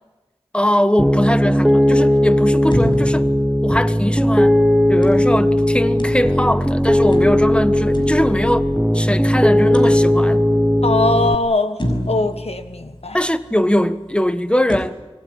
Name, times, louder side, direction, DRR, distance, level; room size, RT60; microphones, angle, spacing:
voice 1, 0.5-3.3 3.6-4.6 4.9-8.7 8.9-10.4 13.1-15.0, equal, 10° left, 1.4 m, -20 dB
Piano, 1.0-11.3, left 1 dB, 5° right, 1.1 m, -16 dB
sound 1, 2.7-4.3 5.0-6.6 7.1-9.0 9.7-10.6 11.1-11.2 11.8-13.5 14.7-14.8, equal, 50° left, 6.1 m, -29 dB
voice 2, 10.8-13.2, left 2 dB, 85° left, 1.6 m, -21 dB
26.0 x 21.0 x 9.7 m
wide cardioid pair, 40°, 10 cm